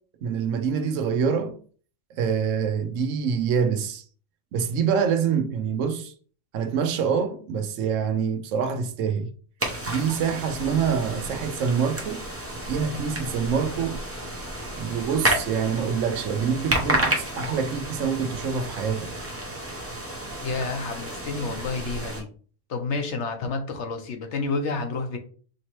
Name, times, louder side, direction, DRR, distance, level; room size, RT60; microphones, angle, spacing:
voice 1, 0.2-1.6 2.2-4.0 4.5-6.1 6.5-9.3 9.9-12.2 12.6-14.0 14.7-19.1, right 6 dB, 75° right, 1.0 m, -26 dB
sound 1, 9.6-22.2, right 1 dB, 15° right, 0.5 m, -31 dB
voice 2, 20.4-22.3 22.7-25.2, left 3 dB, 65° left, 1.0 m, -29 dB
5.0 x 3.0 x 3.0 m
omnidirectional pair, 1.3 m